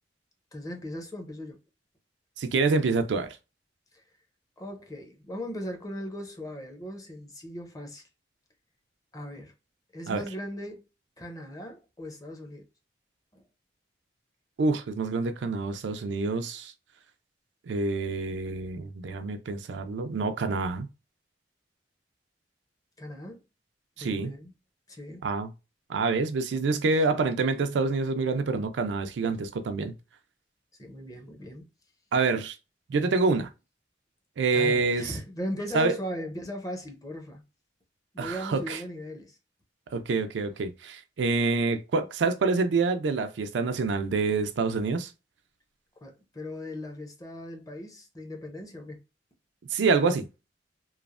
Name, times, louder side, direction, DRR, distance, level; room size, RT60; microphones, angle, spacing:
voice 1, 0.5-1.6 3.9-4.0 4.6-8.0 9.1-9.5 9.9-10.9 11.2-12.7 13.3-13.4 23.0-23.4 24.0-24.5 24.9-25.3 30.8-31.7 34.5-37.4 38.1-39.4 46.0-49.0, equal, 20° left, 0.6 m, -38 dB
voice 2, 2.4-3.4 10.1-10.2 14.6-16.7 17.7-20.9 24.0-24.3 25.2-25.5 25.9-29.9 32.1-32.6 32.9-33.5 34.4-35.1 35.7-36.0 38.2-38.8 39.9-45.1 49.7-50.3, right 4 dB, 80° right, 0.4 m, -27 dB
3.0 x 2.0 x 2.4 m
head